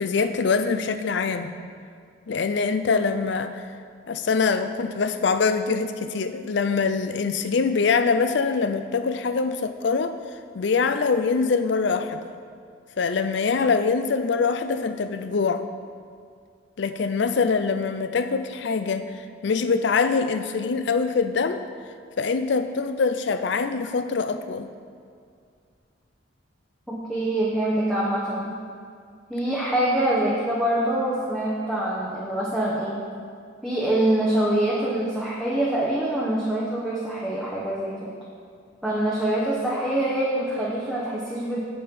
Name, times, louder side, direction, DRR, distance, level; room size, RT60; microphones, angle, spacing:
voice 1, 0.0-1.5 2.3-3.7 4.1-10.2 10.5-12.3 13.0-15.6 16.8-19.1 19.4-21.6 22.2-24.7, left 5 dB, 60° left, 10 dB, 0.4 m, -24 dB
voice 2, 26.9-28.5 29.3-33.0 33.6-38.1 38.8-41.6, right 1 dB, ahead, -7 dB, 0.9 m, -25 dB
7.5 x 6.7 x 5.3 m, 2.3 s
head